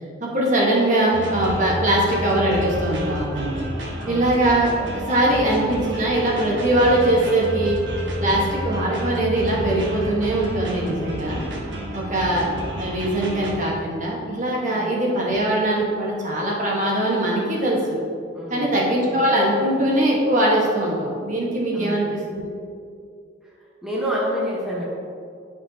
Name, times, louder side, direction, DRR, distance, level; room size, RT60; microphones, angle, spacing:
voice 1, 0.2-3.6 4.1-7.8 8.2-11.4 11.9-18.0 18.5-22.5, right 1 dB, 40° right, -4 dB, 1.3 m, -21 dB
sound 1, 1.1-13.6, equal, 70° right, 1.2 m, -30 dB
voice 2, 4.0-4.4 12.0-12.5 14.7-15.1 18.3-18.7 19.1-19.2 21.7-22.3 23.8-24.8, equal, 5° right, -6 dB, 1.0 m, -29 dB
10.5 x 5.3 x 2.8 m, 2.4 s
head